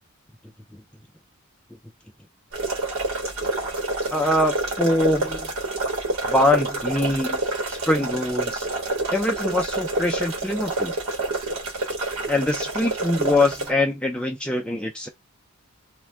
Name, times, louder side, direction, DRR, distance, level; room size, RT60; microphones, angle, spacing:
sound 1, 2.5-13.7, right 2 dB, 70° right, 1.0 m, -28 dB
voice 1, 4.1-5.5 6.3-7.4 7.7-8.7 9.1-10.9 12.3-15.1, left 1 dB, 5° left, 0.3 m, -23 dB
2.5 x 2.2 x 3.3 m
head